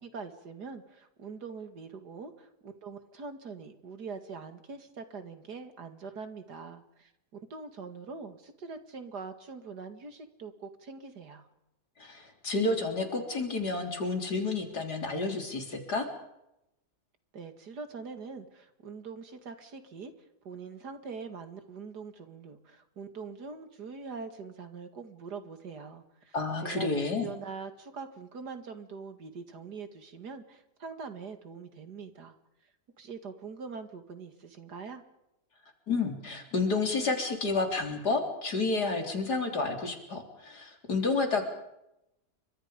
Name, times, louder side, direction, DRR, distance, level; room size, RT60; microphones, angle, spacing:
voice 1, 0.0-7.1 7.5-11.5 17.3-20.1 20.4-26.3 26.6-32.4 33.0-35.0, right 5 dB, 80° right, 8 dB, 2.7 m, -43 dB
voice 2, 12.0-16.1 26.3-27.3 35.9-41.4, left 3 dB, 80° left, 4 dB, 4.3 m, -30 dB
29.0 x 24.5 x 5.2 m, 0.86 s
omnidirectional pair, 1.7 m